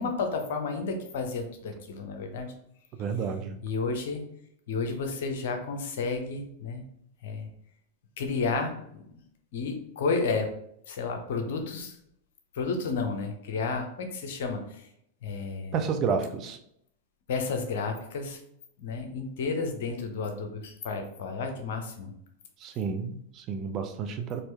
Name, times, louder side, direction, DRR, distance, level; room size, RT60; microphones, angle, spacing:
voice 1, 0.0-2.5 3.6-4.2 4.7-6.9 7.2-7.5 8.2-9.2 9.5-10.5 10.9-12.0 12.5-14.9 15.2-15.8 17.3-18.4 18.8-22.1, left 4 dB, 55° left, 5 dB, 0.7 m, -31 dB
voice 2, 3.0-3.6 15.7-16.6 22.6-24.4, right 5 dB, 35° right, 6 dB, 0.5 m, -30 dB
4.4 x 2.6 x 3.3 m, 0.71 s
figure-of-eight pair, 90°, 0 cm